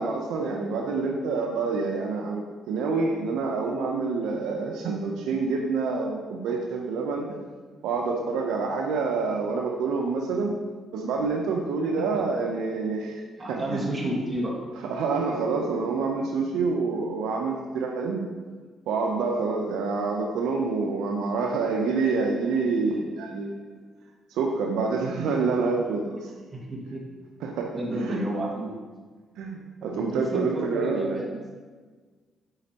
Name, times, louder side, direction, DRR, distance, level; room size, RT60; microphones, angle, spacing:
voice 1, 0.0-7.3 7.8-10.5 10.9-13.8 14.9-18.2 18.9-23.6 24.3-26.3 27.4-28.2 29.4-31.2, right 4 dB, 90° right, 1 dB, 0.6 m, -27 dB
voice 2, 13.4-14.7 26.5-27.1 27.8-28.7 29.8-31.5, right 1 dB, 30° right, -3 dB, 1.7 m, -31 dB
7.7 x 5.1 x 2.9 m, 1.4 s
cardioid pair, 90°, 0 cm